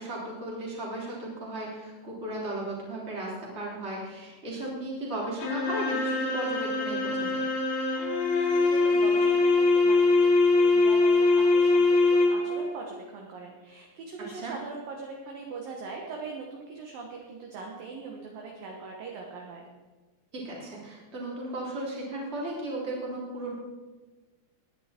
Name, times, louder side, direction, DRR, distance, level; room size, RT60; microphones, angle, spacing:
voice 1, 0.0-7.5 14.3-14.5 20.3-23.5, right 2 dB, 15° right, -4 dB, 3.0 m, -35 dB
sound 1, 5.4-12.7, left 3 dB, 80° left, 4.3 m, -23 dB
voice 2, 8.4-19.6, right 4 dB, 65° right, 0 dB, 2.4 m, -41 dB
19.0 x 10.0 x 4.4 m, 1.3 s
omnidirectional pair, 5.6 m